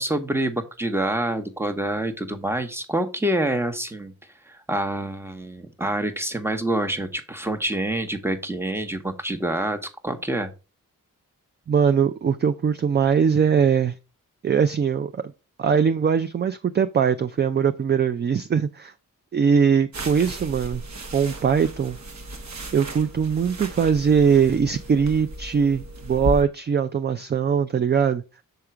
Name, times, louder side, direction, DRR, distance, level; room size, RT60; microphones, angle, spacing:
voice 1, 0.0-4.1 4.5-10.5, right 1 dB, 5° right, 0.9 m, -27 dB
voice 2, 11.7-13.9 14.4-15.2 15.6-18.9 19.3-20.8 21.1-22.0 22.7-28.2, right 6 dB, 30° right, 0.4 m, -21 dB
sound 1, 19.9-26.4, right 1 dB, 55° right, 1.2 m, -35 dB
6.8 x 3.6 x 4.4 m
cardioid pair, 65°, 33 cm